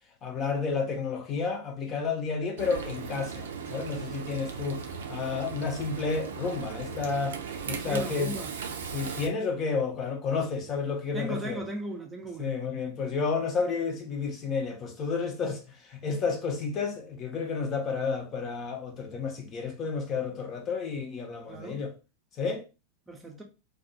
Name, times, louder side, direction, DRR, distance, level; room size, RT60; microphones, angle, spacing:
voice 1, 0.2-7.4 7.7-8.3 8.9-11.6 12.4-15.6 15.9-21.9 22.4-22.6, left 5 dB, 30° left, 0.6 m, -31 dB
Frying (food), 2.6-9.3, right 6 dB, 65° right, 0.5 m, -37 dB
voice 2, 7.9-8.5 11.1-12.6 21.5-21.8 23.1-23.4, right 1 dB, 15° right, 0.6 m, -37 dB
2.3 x 2.3 x 2.7 m
figure-of-eight pair, 90°, 0 cm